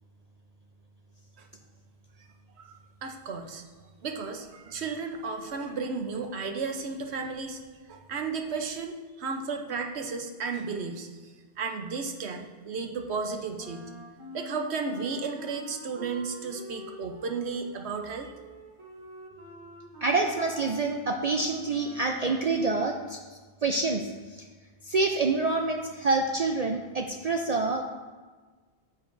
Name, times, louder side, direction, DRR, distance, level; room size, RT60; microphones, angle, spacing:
voice 1, 3.0-3.6 4.0-7.6 7.9-13.9 14.3-18.3, right 4 dB, 85° right, 4 dB, 1.1 m, -34 dB
Wind instrument woodwind instrument, 13.6-22.6, equal, 30° right, 1.1 m, -46 dB
voice 2, 20.0-24.5 24.8-27.8, right 3 dB, 55° right, 3 dB, 0.4 m, -27 dB
9.1 x 7.7 x 2.6 m, 1.4 s
omnidirectional pair, 1.1 m